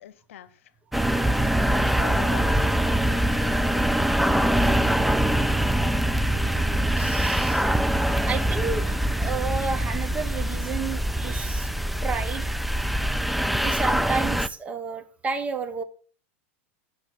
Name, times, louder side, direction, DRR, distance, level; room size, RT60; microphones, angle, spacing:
voice 1, 0.0-1.5 1.7-4.9, left 11 dB, 85° left, 16 dB, 0.8 m, -44 dB
sound 1, 0.9-14.5, right 1 dB, ahead, 0.3 m, -23 dB
sound 2, 3.0-9.5, right 6 dB, 50° right, 2.5 m, -44 dB
voice 2, 6.6-11.7 12.0-12.5 13.6-15.8, right 4 dB, 20° right, 9 dB, 1.1 m, -32 dB
11.0 x 6.5 x 4.6 m, 0.40 s
supercardioid pair, 125°, 7 cm